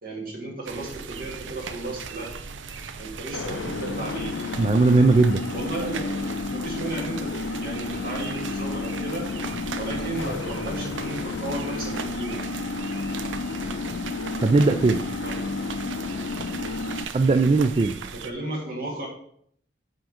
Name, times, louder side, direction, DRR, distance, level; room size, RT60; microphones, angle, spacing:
voice 1, 0.0-2.3 3.0-4.4 5.5-9.3 9.8-12.5 15.2-15.5 18.1-19.1, right 2 dB, 50° right, -2 dB, 2.0 m, -34 dB
sound 1, 0.7-18.3, right 5 dB, 80° right, 0.5 m, -38 dB
sound 2, 3.3-17.0, left 3 dB, 85° left, 0.5 m, -31 dB
voice 2, 4.6-5.4 14.4-15.0 17.1-18.0, right 3 dB, 30° right, 7 dB, 0.3 m, -18 dB
6.2 x 4.5 x 5.0 m, 0.66 s
head